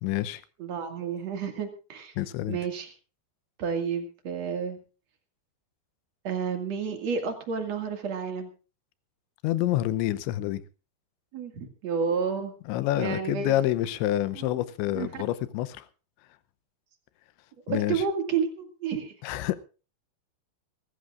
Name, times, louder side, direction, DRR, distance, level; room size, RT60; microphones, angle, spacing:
voice 1, 0.0-0.4 2.2-2.6 9.4-10.6 12.7-15.9 17.7-18.0 19.2-19.6, left 14 dB, 90° left, 14 dB, 3.2 m, -27 dB
voice 2, 0.6-2.1 2.5-2.9 3.6-4.8 6.2-8.5 11.3-12.5 13.0-13.5 14.4-14.5 14.9-15.2 17.7-19.1, right 6 dB, 45° right, 5 dB, 2.7 m, -30 dB
25.5 x 14.5 x 2.5 m, 0.35 s
omnidirectional pair, 5.1 m